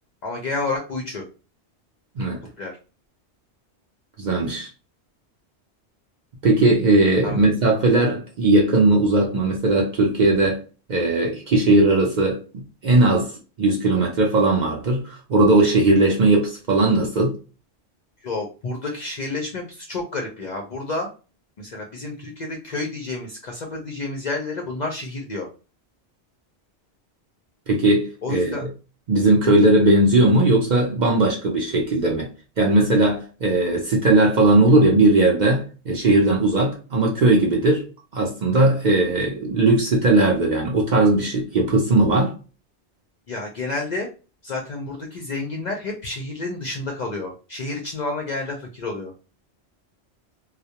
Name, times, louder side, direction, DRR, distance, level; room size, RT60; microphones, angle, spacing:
voice 1, 0.2-1.2 2.6-2.7 7.2-7.4 18.2-21.1 21.6-25.5 28.2-28.6 43.3-44.1 44.4-49.1, left 3 dB, 55° left, 0.5 m, -30 dB
voice 2, 4.2-4.7 6.4-10.6 10.9-13.3 13.6-17.4 27.7-28.7 29.1-32.3 32.6-37.9 38.1-42.3, right 2 dB, 50° right, 0.6 m, -18 dB
2.3 x 2.1 x 2.7 m
omnidirectional pair, 1.2 m